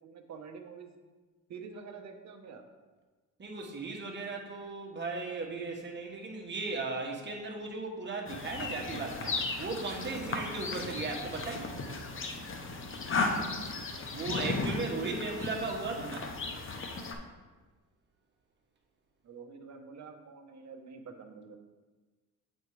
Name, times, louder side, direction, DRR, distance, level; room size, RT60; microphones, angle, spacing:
voice 1, 0.0-0.9 1.5-2.6 10.2-10.4 13.1-13.5 19.2-21.6, right 5 dB, 50° right, 4 dB, 1.0 m, -47 dB
voice 2, 3.4-11.7 14.1-16.3, right 3 dB, 30° right, 0 dB, 1.4 m, -37 dB
sound 1, 8.3-17.1, left 3 dB, 35° left, 0.9 m, -35 dB
8.0 x 4.4 x 4.8 m, 1.3 s
cardioid pair, 105°, 35 cm